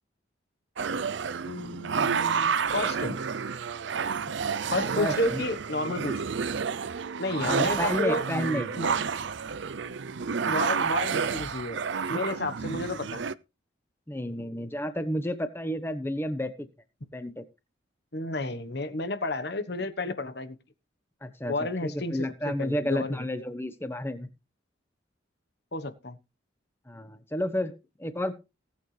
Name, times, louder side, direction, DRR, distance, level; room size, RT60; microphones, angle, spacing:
sound 1, 0.8-13.3, right 6 dB, 65° right, 0.5 m, -30 dB
voice 1, 1.4-3.2 4.7-6.2 7.2-8.2 8.8-9.0 10.4-11.8 12.1-13.2 18.1-20.6 21.5-23.2 25.7-26.2, left 2 dB, 55° left, 11 dB, 1.2 m, -31 dB
voice 2, 4.9-5.4 7.4-8.7 14.1-16.7 17.1-17.4 21.2-21.5 21.8-24.3 26.9-27.7 28.0-28.3, left 1 dB, 10° left, 10 dB, 1.1 m, -31 dB
18.5 x 8.6 x 3.3 m, 0.28 s
head